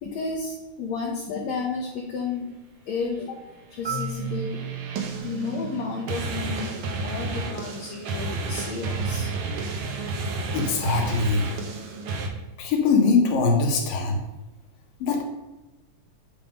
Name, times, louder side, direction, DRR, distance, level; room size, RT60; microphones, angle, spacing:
voice 1, 0.0-2.5 2.9-3.4 3.7-4.6 5.2-9.3, left 4 dB, 65° left, -2 dB, 2.0 m, -32 dB
Marimba xylophone, 3.8-7.7, right 5 dB, 15° right, 1.0 m, -36 dB
sound 1, 3.9-12.3, right 3 dB, 75° right, 1.2 m, -31 dB
voice 2, 10.5-11.5 12.6-14.2 15.0-15.2, left 4 dB, 90° left, 1 dB, 3.0 m, -22 dB
9.1 x 3.7 x 5.2 m, 1.1 s
omnidirectional pair, 3.8 m